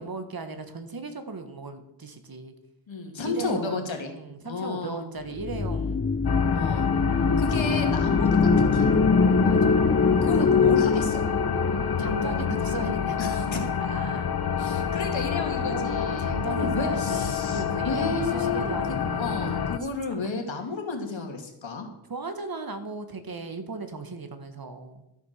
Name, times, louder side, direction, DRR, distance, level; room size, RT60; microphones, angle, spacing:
voice 1, 0.0-2.5 3.2-6.1 7.1-7.4 9.4-9.9 12.0-14.3 15.6-19.6 20.2-20.3 22.1-25.0, right 3 dB, 50° right, 8 dB, 1.6 m, -37 dB
voice 2, 2.9-4.1 4.4-5.0 6.5-6.9 7.4-8.9 10.2-11.2 13.2-13.6 14.6-21.9, left 3 dB, 90° left, 4 dB, 2.3 m, -32 dB
sound 1, 5.4-13.7, left 4 dB, 30° left, 0.6 m, -24 dB
sound 2, 6.2-19.8, left 7 dB, 55° left, 0.9 m, -28 dB
13.0 x 7.4 x 6.7 m, 0.84 s
wide cardioid pair, 95°, 44 cm